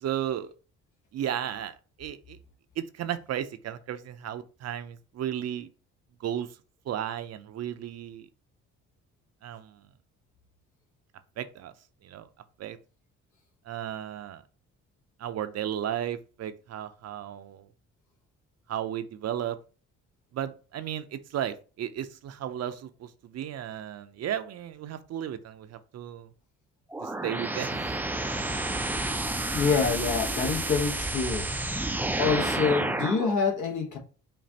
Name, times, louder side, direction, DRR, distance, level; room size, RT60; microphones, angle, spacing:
voice 1, 0.0-0.5 1.1-2.4 2.8-5.7 6.2-6.5 6.9-8.3 9.4-9.8 11.4-11.7 12.0-12.3 12.6-12.8 13.7-14.4 15.2-17.7 18.7-19.6 20.3-26.3 27.0-28.0, right 10 dB, 55° right, 0.5 m, -34 dB
sound 1, 26.9-33.3, right 2 dB, 5° right, 0.3 m, -30 dB
voice 2, 29.5-31.5 32.2-34.0, left 5 dB, 75° left, 1.2 m, -26 dB
5.1 x 2.4 x 2.8 m
cardioid pair, 90°, 30 cm